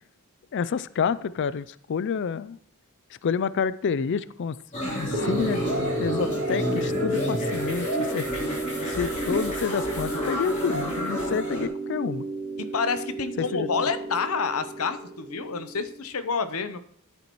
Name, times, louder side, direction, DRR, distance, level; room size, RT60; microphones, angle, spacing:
voice 1, 0.5-2.6 3.2-5.7 5.9-7.9 8.1-8.2 8.9-12.2 13.4-13.7, left 6 dB, 55° left, 17 dB, 0.4 m, -28 dB
sound 1, 4.7-11.7, equal, 35° left, 3.3 m, -30 dB
sound 2, 5.1-16.0, right 2 dB, 45° right, 3.2 m, -33 dB
voice 2, 12.6-16.8, left 5 dB, 70° left, 11 dB, 0.8 m, -28 dB
13.5 x 8.5 x 3.1 m, 0.66 s
head